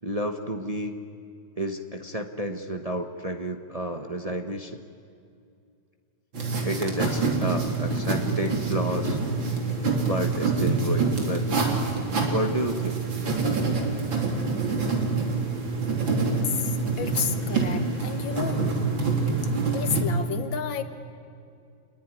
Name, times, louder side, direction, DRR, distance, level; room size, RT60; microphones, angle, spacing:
voice 1, 0.0-0.9 1.6-4.8 6.6-9.2 10.0-11.6 12.2-13.0, right 1 dB, 25° right, 5 dB, 1.0 m, -30 dB
sound 1, 6.3-20.0, right 3 dB, 80° right, 3.9 m, -26 dB
voice 2, 17.0-18.6 19.7-20.8, left 7 dB, 75° left, 9 dB, 2.1 m, -31 dB
28.0 x 20.5 x 9.8 m, 2.4 s
omnidirectional pair, 2.1 m